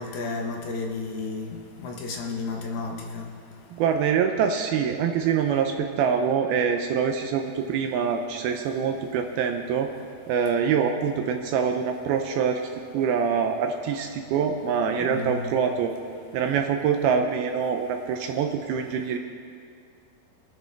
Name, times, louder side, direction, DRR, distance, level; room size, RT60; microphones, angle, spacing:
voice 1, 0.0-3.3 15.0-15.5, left 3 dB, 70° left, 1 dB, 3.1 m, -32 dB
voice 2, 3.7-9.9 10.3-15.9 16.3-19.2, right 7 dB, 80° right, 5 dB, 2.3 m, -25 dB
24.5 x 9.8 x 3.5 m, 2.2 s
omnidirectional pair, 4.8 m